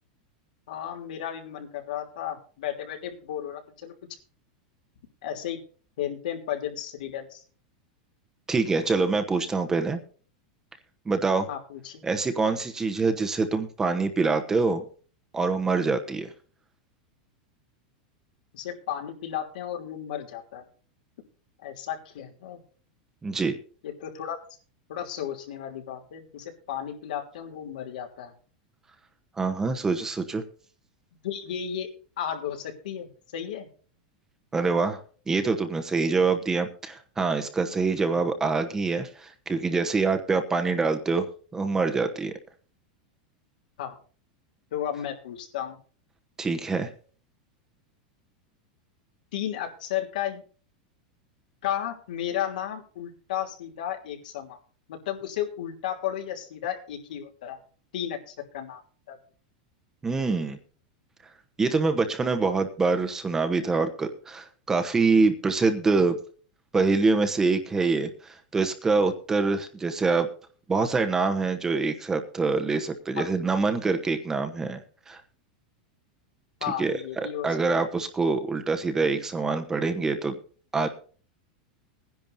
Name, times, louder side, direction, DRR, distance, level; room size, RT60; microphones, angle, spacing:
voice 1, 0.7-3.9 5.2-5.6 6.0-7.4 11.5-12.0 18.5-20.6 21.6-22.6 23.8-24.4 24.9-28.3 31.2-31.9 32.2-33.7 43.8-44.0 44.7-45.8 49.3-50.4 51.6-54.6 54.9-57.6 57.9-58.8 59.1-59.2 61.8-62.0 73.2-73.3 76.6-77.5, left 10 dB, 80° left, 3 dB, 3.1 m, -33 dB
voice 2, 8.5-10.0 11.1-11.5 12.0-14.8 15.3-16.3 23.2-23.6 29.4-30.4 34.5-35.0 35.3-41.3 41.5-42.3 46.4-46.9 60.0-60.6 61.6-66.2 66.7-70.3 70.7-74.8 75.1-75.2 76.8-80.4 80.7-80.9, right 4 dB, 10° right, 7 dB, 1.0 m, -25 dB
20.5 x 10.5 x 2.7 m, 0.40 s
supercardioid pair, 160°, 4 cm